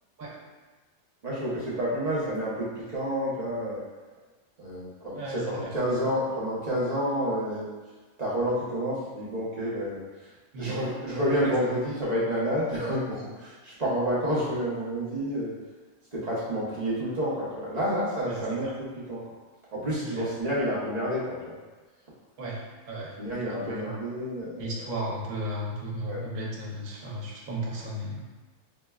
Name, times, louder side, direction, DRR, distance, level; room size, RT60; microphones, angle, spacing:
voice 1, 1.2-3.8 4.6-7.7 8.2-10.3 10.6-15.5 16.1-19.2 19.7-21.6 23.2-25.1 26.0-26.2, equal, 35° right, -7 dB, 0.7 m, -29 dB
voice 2, 5.2-5.7 10.5-10.8 11.3-11.5 18.3-18.4 20.0-20.2 22.4-23.1 23.5-24.0 24.6-28.2, right 1 dB, 75° right, -3 dB, 1.1 m, -35 dB
4.9 x 2.1 x 2.2 m, 1.3 s
omnidirectional pair, 1.5 m